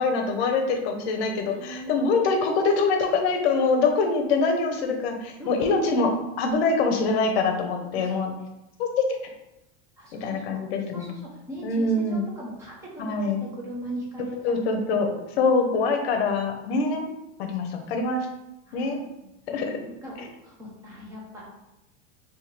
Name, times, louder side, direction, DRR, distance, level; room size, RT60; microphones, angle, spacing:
voice 1, 0.0-8.3 8.8-9.0 10.1-11.1 11.6-12.2 13.0-13.5 14.4-15.1 15.4-17.1 17.4-18.3 18.7-19.0 19.5-19.8, left 4 dB, 65° left, 4 dB, 0.7 m, -24 dB
voice 2, 1.5-2.0 5.4-6.1 7.8-8.1 10.0-10.6 10.9-14.3 17.4-18.1 18.7-19.0 19.5-21.5, right 1 dB, 10° right, -4 dB, 0.5 m, -40 dB
3.6 x 2.7 x 3.0 m, 0.91 s
supercardioid pair, 175°, 33 cm